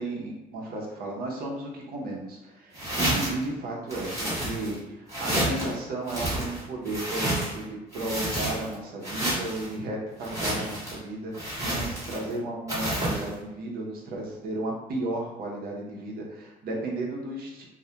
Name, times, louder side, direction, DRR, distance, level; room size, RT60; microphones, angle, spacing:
voice 1, 0.0-17.6, right 2 dB, 60° right, -1 dB, 0.7 m, -34 dB
sound 1, 2.7-3.4 3.9-4.8 5.1-5.7 6.1-7.6 7.9-8.7 9.0-9.7 10.2-11.0 11.3-12.3 12.7-13.3, right 1 dB, 20° right, 1.1 m, -30 dB
2.3 x 2.1 x 2.8 m, 0.97 s
cardioid pair, 110°, 17 cm